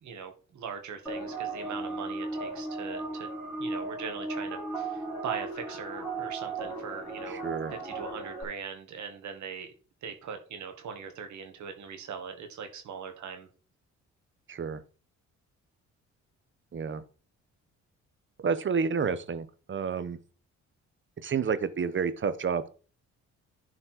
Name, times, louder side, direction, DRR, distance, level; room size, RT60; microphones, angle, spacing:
voice 1, 0.0-3.3 3.6-7.4 7.7-9.7 10.0-13.5, right 6 dB, 70° right, 6 dB, 2.1 m, -40 dB
sound 1, 1.1-8.4, right 3 dB, 5° left, 3.0 m, -36 dB
voice 2, 7.3-7.7 14.5-14.8 16.7-17.0 18.4-20.2 21.2-22.7, right 6 dB, 40° right, 13 dB, 1.0 m, -30 dB
11.5 x 4.3 x 4.5 m, 0.37 s
cardioid pair, 90°, 30 cm